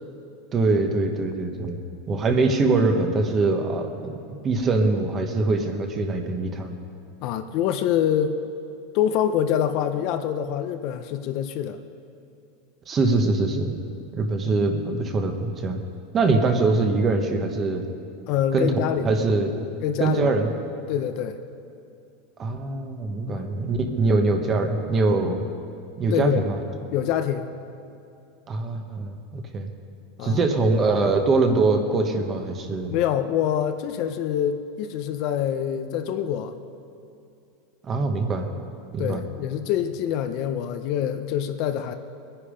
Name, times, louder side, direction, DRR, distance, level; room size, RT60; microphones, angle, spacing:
voice 1, 0.5-1.8 2.1-6.7 12.9-13.8 14.1-15.8 16.1-17.8 18.5-18.7 19.0-19.5 20.0-20.5 22.4-25.5 26.0-26.6 28.5-29.7 30.2-32.9 37.8-38.5 38.9-39.2, right 3 dB, 25° right, 5 dB, 1.2 m, -23 dB
voice 2, 7.2-8.4 8.9-11.8 14.4-14.7 18.3-19.1 19.8-20.3 20.9-21.4 23.3-23.5 26.1-26.4 26.9-27.5 30.2-30.4 32.9-36.5 39.0-41.9, left 9 dB, 45° left, 8 dB, 0.7 m, -25 dB
21.5 x 10.0 x 5.1 m, 2.6 s
supercardioid pair, 155°, 0 cm